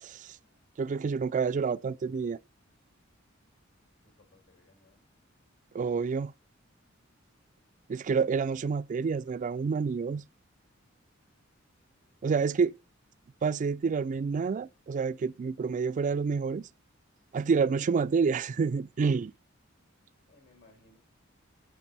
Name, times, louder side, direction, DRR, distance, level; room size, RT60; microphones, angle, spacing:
voice 1, 0.0-0.4 0.8-2.4 5.7-6.3 7.9-10.2 12.2-12.7 13.4-16.7 17.3-19.3, right 5 dB, 40° right, 0.3 m, -28 dB
voice 2, 4.0-5.0 11.7-12.2 20.3-21.0, left 2 dB, 65° left, 4.9 m, -63 dB
7.6 x 7.2 x 4.1 m
head